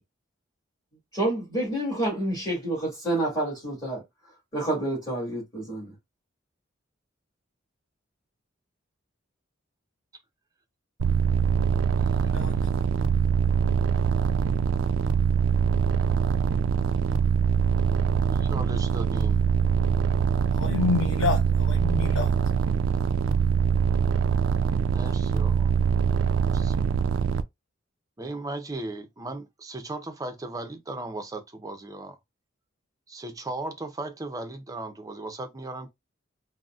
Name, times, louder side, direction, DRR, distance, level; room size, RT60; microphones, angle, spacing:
voice 1, 1.1-4.0 4.5-5.9, right 1 dB, 20° left, 1.6 m, -28 dB
sound 1, 11.0-27.4, right 6 dB, 70° right, 0.3 m, -23 dB
voice 2, 18.1-19.4 24.9-25.7 26.4-26.7 28.2-32.2 33.1-35.9, right 2 dB, 20° right, 0.5 m, -37 dB
voice 3, 20.6-22.3, left 4 dB, 75° left, 0.7 m, -28 dB
3.8 x 2.0 x 2.3 m
head